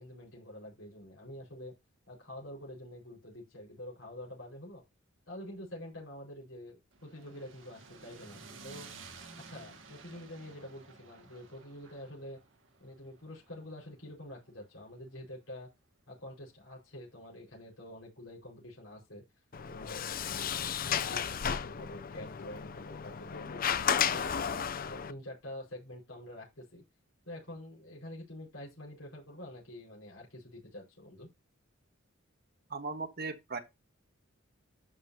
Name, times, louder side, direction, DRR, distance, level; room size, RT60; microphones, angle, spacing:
voice 1, 0.0-1.7 2.1-4.8 5.3-8.9 9.4-12.4 12.8-15.7 16.1-19.2 19.7-20.0 20.8-24.5 24.9-26.8 27.2-31.3, left 1 dB, 80° left, 5.1 m, -47 dB
sound 1, 6.9-15.2, right 4 dB, 65° right, 2.1 m, -53 dB
Sliding door, 19.5-25.1, left 8 dB, 45° left, 0.5 m, -33 dB
voice 2, 32.7-33.6, right 4 dB, 50° right, 1.4 m, -37 dB
12.5 x 5.6 x 2.8 m
head